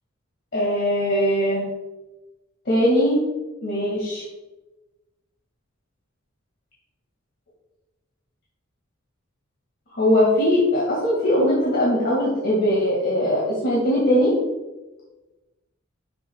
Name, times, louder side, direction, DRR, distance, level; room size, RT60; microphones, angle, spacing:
voice 1, 0.5-1.7 2.7-3.2 3.6-4.2 9.9-14.3, equal, 55° left, -6 dB, 2.1 m, -20 dB
11.5 x 6.8 x 2.3 m, 1.1 s
head